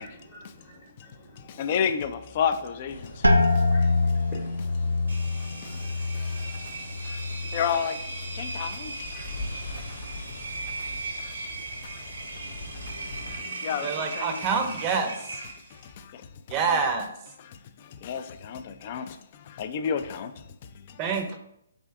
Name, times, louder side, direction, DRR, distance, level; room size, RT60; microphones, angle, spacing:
voice 1, 0.0-1.7 3.0-7.6 8.3-9.8, left 1 dB, 20° left, 0.8 m, -51 dB
voice 2, 1.4-3.3 3.5-3.6 5.3-7.2 7.5-8.0 8.3-9.3 9.7-10.1 10.8-10.9 11.2-11.3 11.8-12.0 12.4-14.7 15.7-16.3 16.6-16.8 17.4-20.3 20.6-21.0, left 7 dB, 40° left, 0.3 m, -33 dB
sound 1, 2.9-13.4, left 2 dB, 65° left, 0.8 m, -43 dB
sound 2, 3.2-8.9 9.2-9.9 10.4-10.9, left 2 dB, 90° right, 0.3 m, -26 dB
Engine, 5.1-15.9, right 3 dB, 65° right, 0.7 m, -38 dB
voice 3, 13.8-15.1 16.5-17.1 21.0-21.4, right 5 dB, 30° right, 0.6 m, -26 dB
3.4 x 2.6 x 3.5 m
figure-of-eight pair, 130°, 0 cm